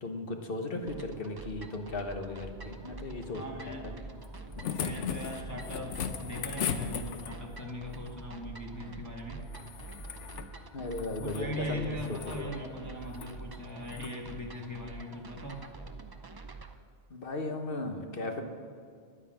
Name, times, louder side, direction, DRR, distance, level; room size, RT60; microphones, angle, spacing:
voice 1, 0.0-4.0 10.7-12.7 17.1-18.4, left 2 dB, 50° left, 5 dB, 1.3 m, -37 dB
sound 1, 0.9-16.7, right 3 dB, 30° right, 0.5 m, -47 dB
sound 2, 1.9-14.1, right 1 dB, 35° left, 3.3 m, -50 dB
voice 2, 3.3-3.8 4.7-9.4 11.2-15.6, equal, 15° left, -1 dB, 1.3 m, -40 dB
sound 3, 4.2-7.6 9.5-10.5 10.9-11.5 12.0-12.4 13.1-13.3 13.9-14.1 15.5-15.6, left 7 dB, 85° left, 1.1 m, -37 dB
11.0 x 9.6 x 7.6 m, 2.3 s
omnidirectional pair, 1.2 m